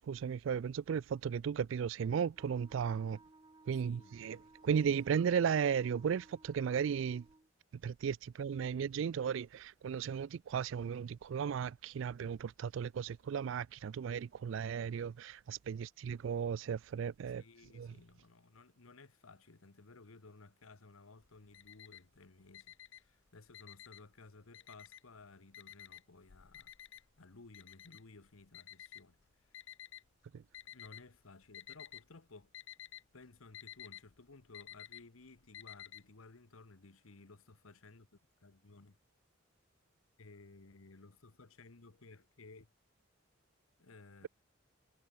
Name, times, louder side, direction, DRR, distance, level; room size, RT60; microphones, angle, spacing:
voice 1, 0.0-3.2 3.7-4.4 4.6-7.2 7.8-17.4 17.7-17.9 30.3-30.4, right 7 dB, 65° right, 0.3 m, -35 dB
Wind instrument woodwind instrument, 2.3-7.5, right 2 dB, 20° right, 0.8 m, -61 dB
voice 2, 3.7-4.5 17.3-26.7 27.2-29.7 30.7-32.5 33.1-38.1 38.4-39.0 40.2-42.7 43.8-44.3, left 3 dB, 90° left, 1.2 m, -57 dB
Alarm, 21.2-22.2 22.5-24.2 24.5-25.2 25.5-30.0 30.5-31.2 31.4-32.1 32.3-36.0, left 11 dB, 65° left, 0.7 m, -52 dB
head